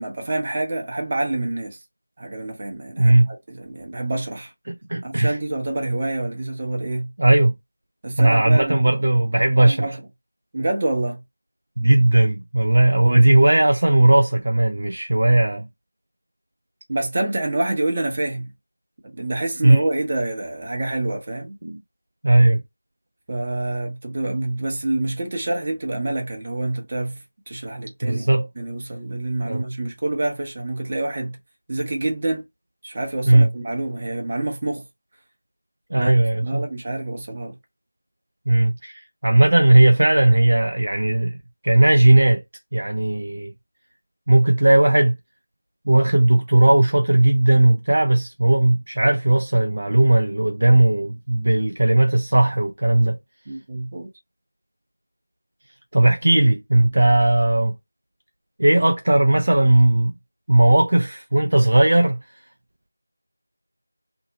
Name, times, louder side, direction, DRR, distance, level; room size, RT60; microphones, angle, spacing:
voice 1, 0.0-1.8 2.2-4.5 5.0-7.1 8.0-9.0 9.6-10.0 10.5-11.2 16.9-18.5 19.2-21.6 23.3-28.3 28.6-31.4 31.7-32.4 32.8-34.9 35.9-36.1 36.4-37.5 53.5-54.1, right 2 dB, 30° right, 0.7 m, -27 dB
voice 2, 3.0-3.3 4.7-5.4 7.2-7.6 8.2-9.9 11.8-15.7 19.6-19.8 21.6-21.8 22.2-22.6 28.0-28.5 29.4-29.6 33.3-33.5 35.9-36.7 38.5-41.4 41.6-42.4 42.7-43.5 44.3-45.2 45.9-53.2 55.9-57.7 58.6-60.1 60.5-62.2, right 1 dB, 55° right, 0.4 m, -17 dB
2.7 x 2.0 x 2.8 m
figure-of-eight pair, 170°, 0 cm